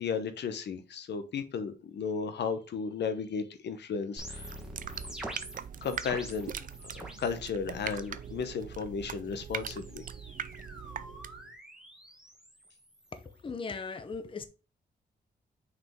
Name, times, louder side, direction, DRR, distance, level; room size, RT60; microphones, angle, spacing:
voice 1, 0.0-4.6 5.8-10.0, left 5 dB, 80° left, 0.9 m, -34 dB
sound 1, 4.2-7.4 7.7-8.3 9.3-13.4, equal, 5° right, 1.3 m, -46 dB
sound 2, 4.3-11.5, right 8 dB, 50° right, 0.4 m, -41 dB
voice 2, 13.4-14.4, left 4 dB, 30° left, 0.7 m, -37 dB
6.2 x 5.0 x 3.6 m
wide cardioid pair, 150°, 17 cm